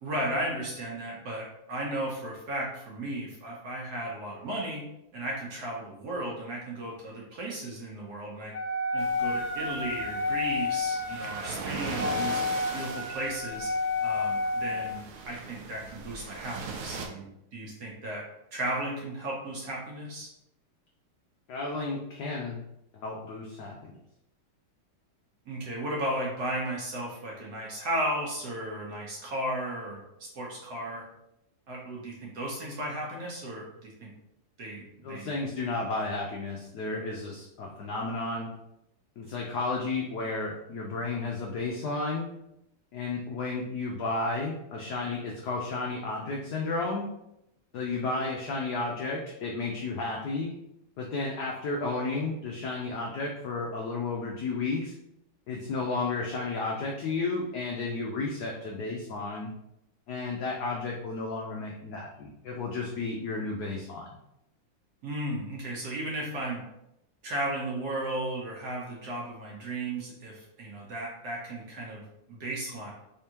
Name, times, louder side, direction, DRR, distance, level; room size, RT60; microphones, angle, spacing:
voice 1, 0.0-4.8 5.1-8.5 8.9-12.4 12.7-13.7 14.0-18.2 18.5-20.3 25.5-30.0 30.3-31.0 31.7-34.1 34.6-35.3 65.0-66.6 67.2-72.9, right 1 dB, 60° right, -3 dB, 1.2 m, -35 dB
Wind instrument woodwind instrument, 8.5-15.0, left 3 dB, 50° left, 1.0 m, -30 dB
sound 1, 9.0-17.1, right 4 dB, 75° right, 1.3 m, -40 dB
voice 2, 21.5-22.6 22.9-23.9 35.0-38.5 39.2-42.3 42.9-47.0 47.7-50.5 51.0-54.9 55.5-59.5 60.1-64.1, left 3 dB, 90° left, -1 dB, 0.8 m, -32 dB
3.5 x 3.4 x 2.8 m, 0.83 s
omnidirectional pair, 2.4 m